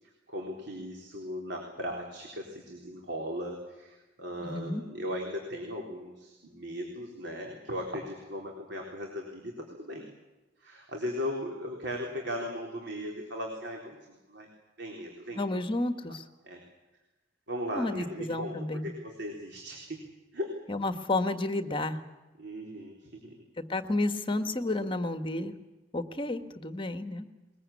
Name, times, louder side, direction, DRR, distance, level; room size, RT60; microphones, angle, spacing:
voice 1, 0.0-10.1 10.6-14.5 14.8-15.6 16.4-16.6 17.5-18.6 18.8-20.0 20.3-20.6 22.4-23.4, equal, 65° right, 1 dB, 4.0 m, -38 dB
voice 2, 4.4-4.8 15.3-16.2 17.7-18.9 20.7-22.0 23.6-25.6 25.9-27.3, left 2 dB, 30° left, 9 dB, 1.6 m, -31 dB
21.5 x 21.5 x 8.5 m, 1.1 s
head